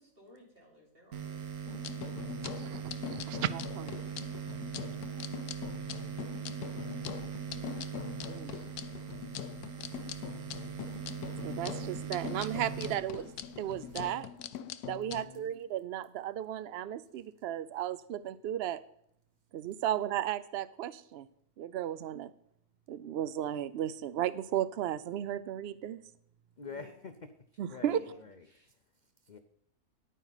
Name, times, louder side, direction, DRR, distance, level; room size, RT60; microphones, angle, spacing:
voice 1, 0.0-1.9 4.7-5.2 26.7-27.0 27.9-28.2 28.5-28.7, left 1 dB, 35° right, -4 dB, 4.0 m, -59 dB
sound 1, 1.1-14.1, right 8 dB, 75° right, 1.5 m, -41 dB
sound 2, 1.7-15.2, left 11 dB, 80° left, 1.1 m, -42 dB
voice 2, 3.1-4.0 8.0-8.6 11.4-13.3 13.6-14.3 14.8-18.8 19.5-21.3 21.6-22.3 22.9-26.0 27.6-28.0, right 11 dB, 90° right, 16 dB, 0.5 m, -35 dB
voice 3, 4.8-5.4 7.5-7.9 11.7-11.9 15.1-15.5 26.6-27.3 27.7-29.4, left 5 dB, 60° left, 8 dB, 0.4 m, -49 dB
11.0 x 9.3 x 4.0 m, 0.68 s
omnidirectional pair, 1.6 m